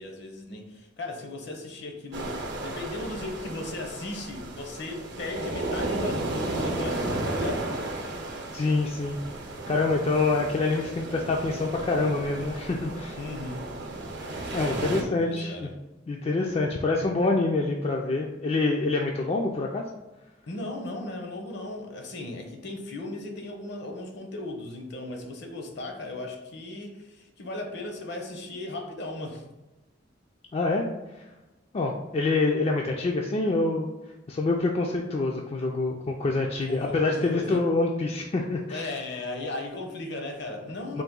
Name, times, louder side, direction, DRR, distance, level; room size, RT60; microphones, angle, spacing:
voice 1, 0.0-7.7 13.1-13.7 14.4-15.7 20.5-29.4 36.6-37.7 38.7-41.0, left 2 dB, 60° left, 3 dB, 0.7 m, -36 dB
sound 1, 2.1-15.0, right 2 dB, 60° right, 0.7 m, -34 dB
voice 2, 8.5-9.2 9.7-13.2 14.5-15.7 16.1-19.9 30.5-30.9 31.2-31.3 31.7-33.9 34.3-38.9 40.9-41.0, left 3 dB, 30° left, 0 dB, 0.3 m, -26 dB
3.9 x 2.6 x 3.7 m, 1.1 s
head